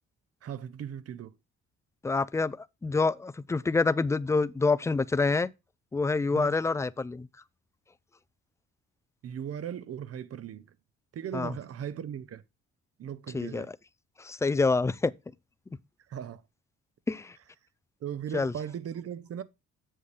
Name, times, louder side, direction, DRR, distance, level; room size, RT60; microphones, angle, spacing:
voice 1, 0.4-1.3 6.3-6.5 9.2-10.7 11.1-12.4 13.0-13.7 16.1-16.4 18.0-19.4, right 9 dB, 50° right, 0.7 m, -38 dB
voice 2, 2.0-2.6 2.8-5.5 5.9-7.3 11.3-11.5 13.3-13.7 14.2-15.1 17.1-17.4 18.3-18.5, left 3 dB, 10° left, 0.3 m, -27 dB
7.7 x 6.6 x 3.3 m
cardioid pair, 90°, 30 cm